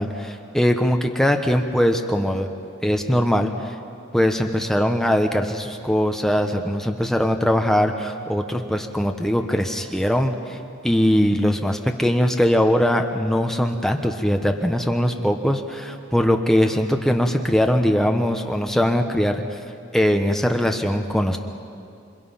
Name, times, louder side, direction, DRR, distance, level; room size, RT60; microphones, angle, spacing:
voice 1, 0.0-2.5 2.8-3.7 4.1-10.6 10.8-19.6 19.9-21.4, equal, ahead, 4 dB, 1.0 m, -21 dB
27.5 x 26.5 x 5.8 m, 2.5 s
head